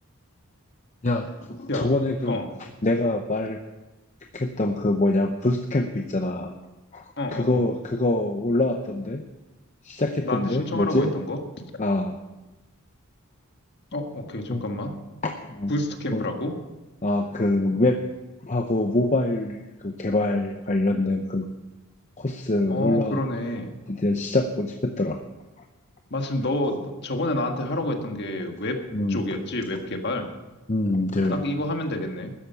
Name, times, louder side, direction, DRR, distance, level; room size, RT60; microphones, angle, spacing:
voice 1, 1.0-2.4 2.8-3.6 4.3-6.5 6.9-9.2 9.8-11.1 11.8-12.2 14.5-14.7 15.2-15.7 16.1-16.3 17.0-18.0 18.4-21.5 22.2-23.2 23.9-25.2 25.6-25.7 28.9-29.2 30.7-31.4, left 2 dB, 30° left, 5 dB, 0.7 m, -25 dB
voice 2, 7.2-7.6 10.2-11.4 13.9-15.0 15.7-16.5 22.7-23.7 26.1-28.8 29.1-30.3 31.3-32.3, left 1 dB, 50° left, 4 dB, 1.7 m, -28 dB
13.0 x 10.0 x 6.9 m, 1.1 s
head